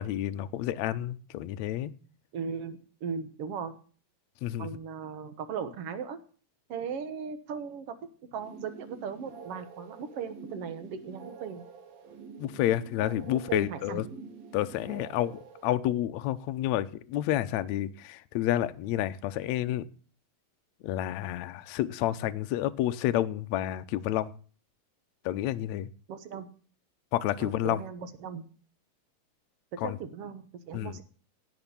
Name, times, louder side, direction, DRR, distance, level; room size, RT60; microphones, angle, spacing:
voice 1, 0.0-1.9 4.4-4.7 12.4-14.0 14.5-19.8 20.8-24.3 25.2-25.9 27.1-27.8 29.8-30.0 30.7-31.0, left 13 dB, 75° left, 10 dB, 1.6 m, -30 dB
voice 2, 2.3-3.7 4.6-6.2 6.7-8.0 8.3-11.6 13.5-14.0 26.1-26.5 27.4-28.4 29.7-31.0, right 6 dB, 60° right, 10 dB, 1.6 m, -37 dB
sound 1, 8.3-15.7, right 5 dB, 90° right, 3.6 m, -47 dB
17.0 x 6.0 x 7.1 m, 0.41 s
omnidirectional pair, 4.0 m